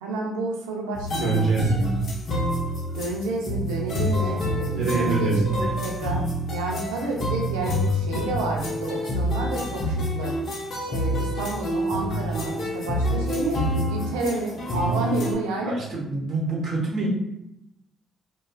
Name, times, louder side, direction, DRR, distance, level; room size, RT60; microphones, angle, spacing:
voice 1, 0.0-1.9 2.9-10.3 10.9-15.8, right 2 dB, 85° right, 0 dB, 0.4 m, -30 dB
sound 1, 0.9-15.3, equal, 55° left, 0.6 m, -27 dB
voice 2, 1.2-2.0 4.7-5.4 15.6-17.1, right 3 dB, 60° right, -3 dB, 0.9 m, -25 dB
2.4 x 2.3 x 2.2 m, 0.85 s
hypercardioid pair, 50°, 0 cm